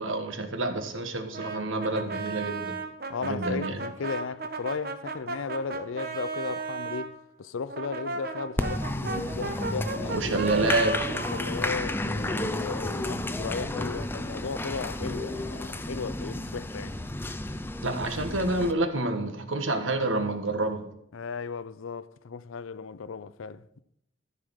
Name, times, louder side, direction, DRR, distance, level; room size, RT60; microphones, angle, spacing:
voice 1, 0.0-2.8 3.2-3.8 10.1-11.2 17.8-20.8, right 2 dB, 80° right, 1.5 m, -28 dB
Brass instrument, 1.3-7.1 7.7-12.5, right 3 dB, 50° right, 1.1 m, -35 dB
voice 2, 3.1-10.4 11.3-17.0 21.1-23.8, left 5 dB, 85° left, 0.5 m, -36 dB
Applause, 8.6-18.7, left 1 dB, 10° left, 0.5 m, -32 dB
14.0 x 5.0 x 6.4 m
head